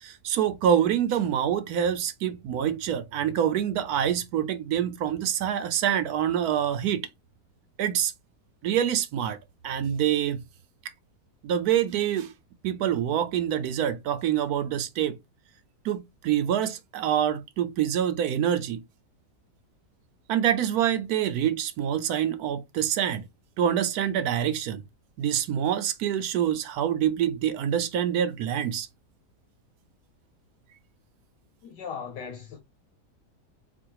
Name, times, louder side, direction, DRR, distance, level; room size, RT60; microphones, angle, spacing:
voice 1, 0.0-7.0 7.8-8.1 8.6-9.4 9.6-10.4 11.4-12.3 12.6-15.2 15.8-18.8 20.3-23.3 23.6-24.8 25.2-28.9, right 9 dB, 70° right, 1.0 m, -26 dB
voice 2, 31.6-32.6, left 6 dB, 90° left, 1.5 m, -38 dB
4.2 x 2.4 x 4.5 m
omnidirectional pair, 1.8 m